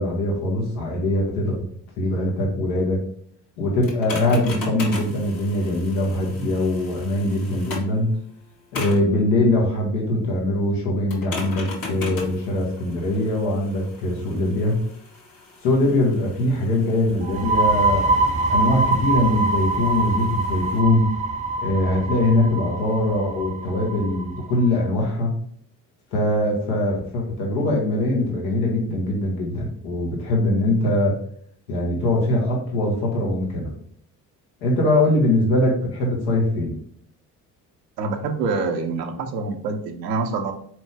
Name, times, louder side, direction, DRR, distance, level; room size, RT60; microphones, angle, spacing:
voice 1, 0.0-1.6 2.0-3.0 3.6-8.1 8.7-14.8 15.6-21.1 21.6-25.3 26.1-31.2 31.7-33.7 34.6-36.7, left 1 dB, 70° left, -2 dB, 1.4 m, -22 dB
sound 1, 3.8-8.0 8.7-9.1 11.1-20.8, left 3 dB, 45° left, 1.6 m, -37 dB
sound 2, 17.2-24.7, right 2 dB, 15° right, 0.4 m, -24 dB
voice 2, 38.0-40.5, right 4 dB, 80° right, 5 dB, 0.6 m, -26 dB
4.4 x 3.0 x 3.3 m, 0.63 s
figure-of-eight pair, 50°, 48 cm